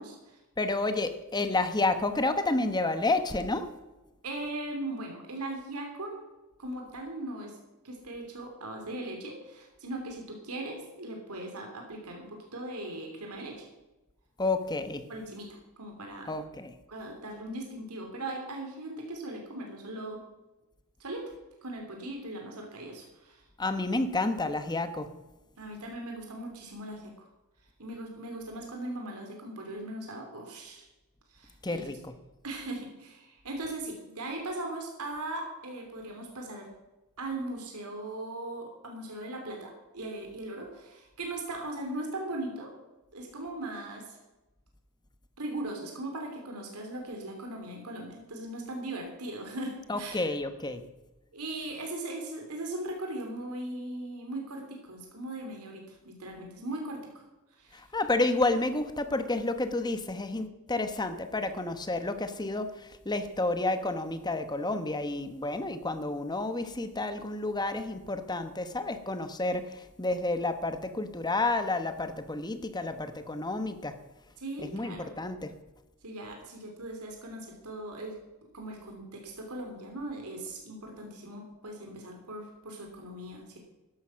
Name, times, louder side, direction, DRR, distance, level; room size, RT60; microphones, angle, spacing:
voice 1, 0.0-0.4 1.4-1.5 4.2-6.2 6.6-7.6 7.8-13.7 15.1-16.3 16.9-20.2 21.0-21.3 21.6-23.4 25.6-27.3 27.8-30.8 31.3-31.9 32.4-36.7 37.2-42.7 43.1-44.2 45.4-50.3 51.3-57.2 57.5-57.8 74.4-75.1 76.0-78.2 78.5-83.6, right 1 dB, 85° right, 2 dB, 3.1 m, -39 dB
voice 2, 0.6-3.7 14.4-15.1 16.3-16.7 23.6-25.1 31.6-32.1 49.9-50.8 57.9-62.7 63.0-69.6 70.0-74.0 74.7-75.5, left 2 dB, 20° left, 9 dB, 1.1 m, -30 dB
13.5 x 11.5 x 5.8 m, 1.0 s
head